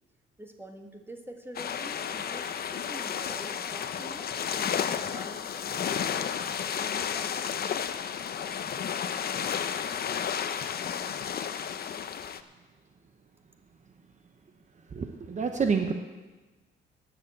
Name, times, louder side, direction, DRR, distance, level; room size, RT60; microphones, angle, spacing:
voice 1, 0.4-4.3 4.5-7.5, right 1 dB, 10° right, 4 dB, 1.7 m, -47 dB
sound 1, 1.5-12.4, left 8 dB, 50° left, 0.7 m, -32 dB
voice 2, 14.9-15.9, right 5 dB, 40° right, 5 dB, 0.9 m, -28 dB
11.5 x 8.0 x 7.8 m, 1.2 s
cardioid pair, 90°, 20 cm